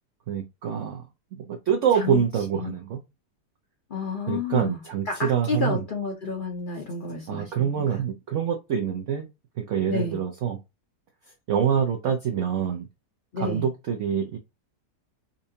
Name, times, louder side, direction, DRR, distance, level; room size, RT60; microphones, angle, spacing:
voice 1, 0.3-1.1 1.3-3.0 4.3-5.8 7.3-9.3 9.6-10.6 11.5-12.9 13.4-14.4, right 8 dB, 85° right, 0.6 m, -26 dB
voice 2, 3.9-4.8 5.1-7.9 9.9-10.2 13.3-13.7, left 4 dB, 60° left, 0.5 m, -31 dB
4.2 x 2.7 x 2.7 m
omnidirectional pair, 1.9 m